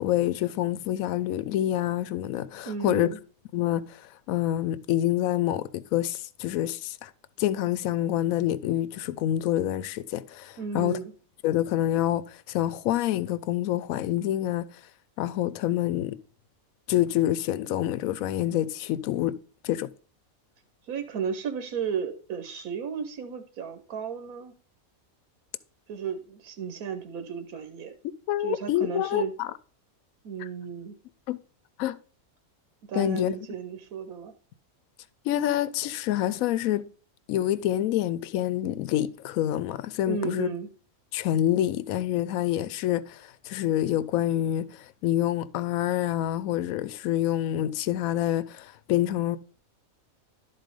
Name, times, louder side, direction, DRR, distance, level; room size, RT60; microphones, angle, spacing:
voice 1, 0.0-3.1 3.5-3.8 4.3-7.1 7.4-11.0 11.4-14.7 15.2-16.2 16.9-19.4 19.6-19.9 28.3-29.5 31.3-31.4 31.8-32.0 32.9-33.3 35.3-36.9 37.3-40.5 41.1-43.2 43.4-44.7 45.0-49.4, left 13 dB, 75° left, 1.0 m, -27 dB
voice 2, 2.7-3.2 10.6-11.1 20.9-24.5 25.9-27.9 28.4-29.3 30.2-30.9 32.9-34.3 40.1-40.7, right 7 dB, 85° right, 1.4 m, -34 dB
12.0 x 4.2 x 5.2 m
omnidirectional pair, 1.5 m